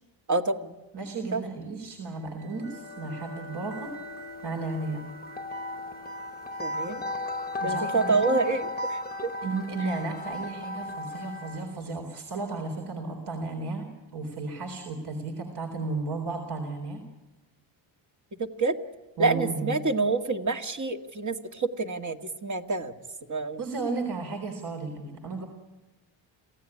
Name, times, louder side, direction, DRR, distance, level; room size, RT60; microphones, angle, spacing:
voice 1, 0.3-0.7 1.3-1.4 6.6-7.0 7.6-9.3 18.3-18.8 19.2-22.9 23.3-23.6, right 3 dB, 35° right, 5 dB, 2.0 m, -27 dB
voice 2, 0.9-3.9 4.4-5.0 7.6-8.3 9.4-17.0 19.2-19.7 23.6-25.5, right 3 dB, 55° right, 3 dB, 4.0 m, -34 dB
sound 1, 2.3-11.8, left 2 dB, 20° left, 1.2 m, -36 dB
27.0 x 16.0 x 9.9 m, 1.2 s
cardioid pair, 90°, 48 cm